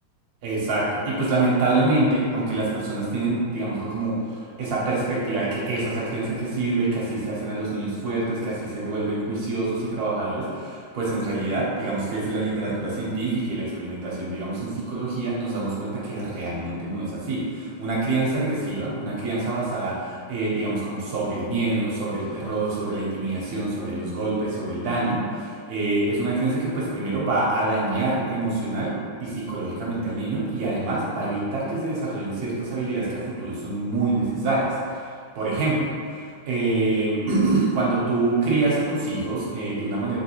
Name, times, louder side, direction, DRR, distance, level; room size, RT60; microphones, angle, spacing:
voice 1, 0.4-36.2 36.5-40.2, right 2 dB, 60° right, -6 dB, 1.0 m, -26 dB
3.0 x 2.9 x 2.9 m, 2.1 s
omnidirectional pair, 2.2 m